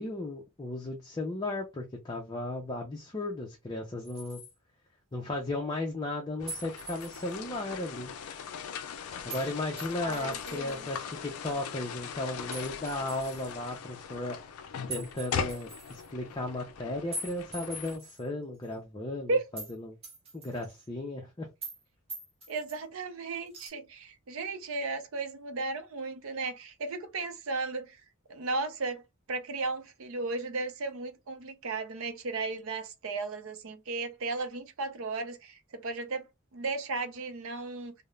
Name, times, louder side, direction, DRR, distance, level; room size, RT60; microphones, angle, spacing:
voice 1, 0.0-4.4 5.1-8.1 9.2-14.4 14.9-20.0 20.3-21.5, left 2 dB, 20° left, 0.4 m, -35 dB
sound 1, 4.0-4.5 6.5-7.3 9.3-9.5 9.8-11.0 12.5-13.5 14.9-16.1 17.1-18.2 18.6-18.7 19.6-19.8 20.0-20.9 21.6-21.8 22.1-22.8 23.5-23.7, right 1 dB, 25° right, 0.8 m, -43 dB
sound 2, 6.4-18.0, left 6 dB, 80° left, 0.4 m, -40 dB
voice 2, 10.0-10.9 19.3-19.4 22.5-28.0 28.3-29.0 29.3-37.9, right 3 dB, 65° right, 0.5 m, -35 dB
2.3 x 2.0 x 3.0 m
head